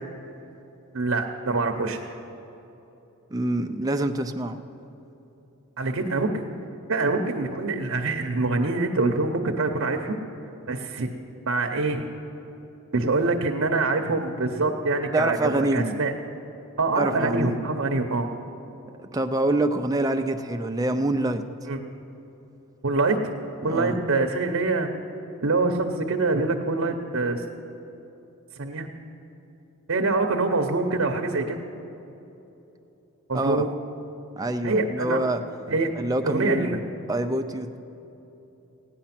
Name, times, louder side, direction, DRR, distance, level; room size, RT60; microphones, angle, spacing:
voice 1, 0.9-2.0 5.8-6.5 6.9-10.2 10.7-11.1 11.5-12.1 12.9-16.1 16.8-18.3 21.7-21.8 22.8-23.2 23.6-24.9 25.4-27.4 28.6-28.9 29.9-31.6 33.3-33.8 34.6-35.2 35.7-35.9 36.2-36.8, right 3 dB, 65° right, 3 dB, 0.8 m, -25 dB
voice 2, 3.3-4.6 15.1-16.0 17.0-17.6 19.0-21.4 23.6-24.0 33.3-33.6 34.4-35.4 36.0-36.8 37.1-37.8, right 1 dB, 15° right, 6 dB, 0.5 m, -26 dB
16.0 x 10.0 x 5.9 m, 3.0 s
head